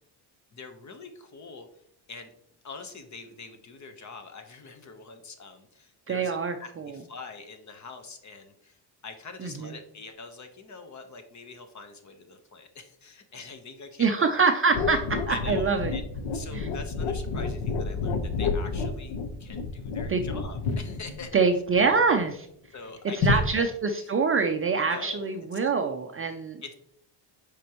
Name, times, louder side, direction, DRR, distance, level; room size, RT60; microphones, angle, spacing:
voice 1, 0.5-1.7 2.1-2.3 2.6-14.3 15.3-16.0 16.3-21.4 22.7-24.1 24.8-25.5 26.6-26.7, left 4 dB, 35° left, 7 dB, 1.1 m, -44 dB
voice 2, 6.1-7.0 9.4-9.7 14.0-15.0 15.3-15.9 16.5-16.7 20.1-20.2 21.3-22.5 23.2-26.6, right 4 dB, 30° right, 5 dB, 0.4 m, -25 dB
sound 1, 14.7-22.3 23.2-23.4, left 4 dB, 80° left, 1.1 m, -30 dB
8.2 x 5.2 x 3.0 m, 0.70 s
cardioid pair, 130°, 49 cm